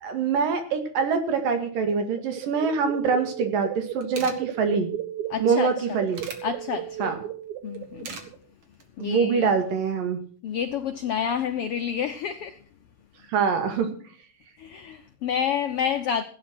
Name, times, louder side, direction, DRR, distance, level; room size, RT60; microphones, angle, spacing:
voice 1, 0.0-4.9 5.4-6.3 7.0-7.2 9.0-10.2 13.3-14.0, right 5 dB, 85° right, 3.8 m, -24 dB
sound 1, 1.7-8.4, right 12 dB, 70° right, 2.0 m, -35 dB
sound 2, 3.6-3.7 3.9-4.4 5.6-6.4 7.7-8.3 8.6-8.9, right 4 dB, 45° right, 2.7 m, -38 dB
voice 2, 5.3-6.0 6.4-7.1 7.6-8.1 9.0-9.5 10.4-12.6 14.6-16.2, left 8 dB, 75° left, 1.3 m, -29 dB
16.5 x 9.4 x 6.1 m
omnidirectional pair, 3.8 m